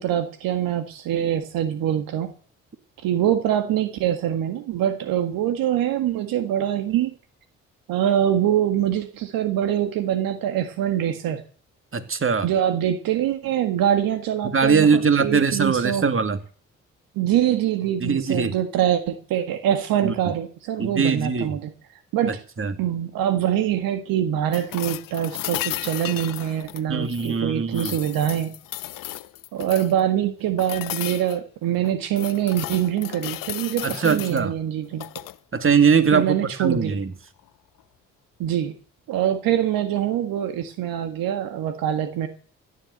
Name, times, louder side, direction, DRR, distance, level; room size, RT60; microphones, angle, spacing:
voice 1, 0.0-2.3 3.0-7.1 7.9-11.4 12.4-16.0 17.2-21.7 22.1-22.4 22.8-28.5 29.5-35.0 36.1-37.0 38.4-38.7 39.1-42.3, right 10 dB, 70° right, 8 dB, 1.7 m, -24 dB
voice 2, 11.9-12.5 14.5-16.4 18.0-18.5 20.0-20.1 20.8-21.5 22.6-22.7 26.9-27.9 33.8-34.5 35.5-37.1, right 5 dB, 35° right, 9 dB, 2.4 m, -21 dB
sound 1, 24.5-27.4 27.7-30.0 30.6-31.4 31.8-34.4 34.9-35.4 37.4-37.5, left 16 dB, 65° left, 0.9 m, -34 dB
15.0 x 10.0 x 7.9 m, 0.42 s
hypercardioid pair, 50°, 36 cm